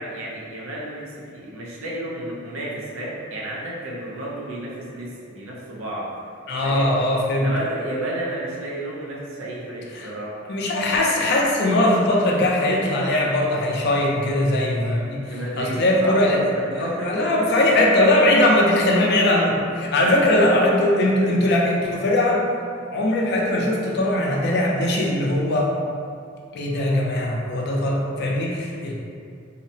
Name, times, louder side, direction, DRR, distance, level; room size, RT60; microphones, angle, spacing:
voice 1, 0.0-6.1 6.6-6.9 7.3-10.4 15.3-16.2 16.5-17.8 18.2-18.6 20.0-20.6 21.2-21.4, right 1 dB, 90° right, -4 dB, 0.5 m, -31 dB
voice 2, 6.5-7.5 9.9-10.1 10.5-15.2 15.6-16.4 16.7-22.4 22.9-25.7 26.5-28.9, left 1 dB, 55° left, -2 dB, 0.4 m, -20 dB
2.7 x 2.1 x 2.6 m, 2.3 s
head